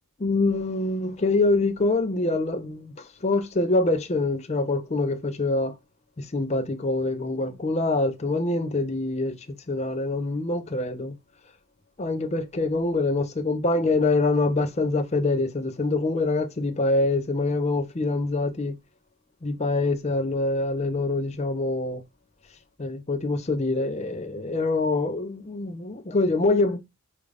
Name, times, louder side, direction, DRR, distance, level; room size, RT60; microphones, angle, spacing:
voice 1, 0.2-5.7 6.2-11.2 12.0-18.8 19.4-22.0 22.8-26.8, left 2 dB, 30° left, 0.5 m, -25 dB
5.0 x 2.4 x 3.3 m
head